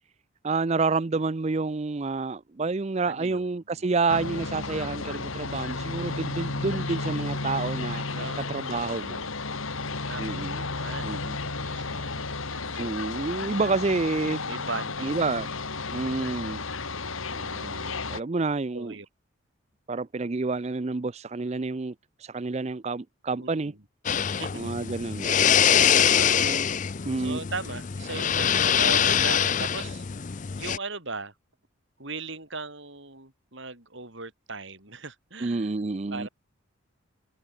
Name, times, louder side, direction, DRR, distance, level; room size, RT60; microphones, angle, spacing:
voice 1, 0.4-8.0 8.5-9.2 10.2-10.6 11.0-11.3 12.8-14.4 15.0-15.5 15.9-16.6 17.3-19.0 19.9-21.9 22.2-23.7 24.5-25.3 26.3-26.6 27.1-27.4 35.4-36.3, right 3 dB, 30° right, 0.4 m, -29 dB
voice 2, 3.0-3.5 3.7-3.9 8.1-8.5 10.0-12.9 14.4-15.2 18.7-19.1 23.4-23.8 24.2-24.7 25.7-26.7 27.2-31.3 32.0-35.7 36.1-36.3, right 3 dB, 60° right, 5.1 m, -39 dB
sound 1, 4.1-18.2, left 3 dB, 70° left, 2.4 m, -33 dB
sound 2, 24.1-30.8, left 8 dB, 35° left, 0.5 m, -24 dB
head